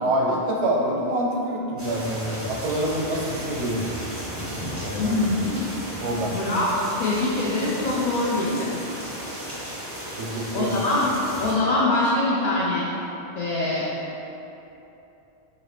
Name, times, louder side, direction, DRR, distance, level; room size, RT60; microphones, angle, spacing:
voice 1, 0.0-4.1 4.8-5.1 6.0-6.4 10.1-10.7, right 1 dB, 85° right, -2 dB, 0.9 m, -26 dB
sound 1, 1.8-11.5, equal, 15° right, 0.6 m, -34 dB
voice 2, 5.0-5.7 6.3-8.8 10.5-11.1 11.4-12.9 13.4-13.9, left 2 dB, 55° left, -6 dB, 0.4 m, -23 dB
4.0 x 2.5 x 3.2 m, 2.9 s
omnidirectional pair, 1.1 m